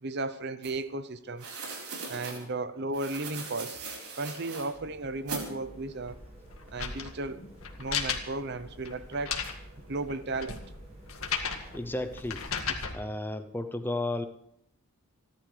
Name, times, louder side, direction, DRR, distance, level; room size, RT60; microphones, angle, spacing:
voice 1, 0.0-1.6 2.1-3.8 4.2-6.2 6.7-7.4 7.8-9.4 9.9-10.6, right 2 dB, 50° right, 13 dB, 0.7 m, -35 dB
sound 1, 0.6-0.7 1.4-2.4 2.9-4.7 5.3-5.5, right 4 dB, 90° right, 4.3 m, -39 dB
sound 2, 4.7-12.4, right 1 dB, 30° right, 5.9 m, -52 dB
sound 3, 6.0-13.0, left 6 dB, 70° left, 1.8 m, -36 dB
voice 2, 11.7-12.4 12.9-14.3, left 2 dB, 10° left, 8 dB, 0.6 m, -33 dB
28.5 x 11.5 x 3.3 m, 0.78 s
head